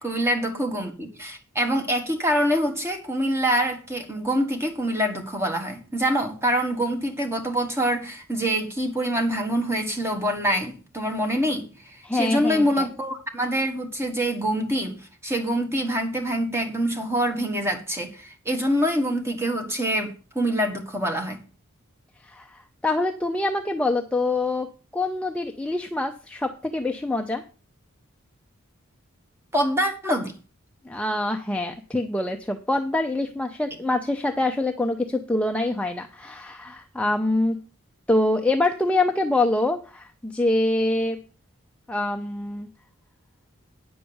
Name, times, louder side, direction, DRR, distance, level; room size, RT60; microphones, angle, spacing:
voice 1, 0.0-21.4 29.5-30.3, equal, 10° right, 1.4 m, -25 dB
voice 2, 12.0-12.9 22.2-24.7 24.9-27.4 30.8-37.6 38.1-41.2 41.9-42.7, left 2 dB, 5° left, 0.6 m, -25 dB
9.5 x 5.0 x 7.1 m
head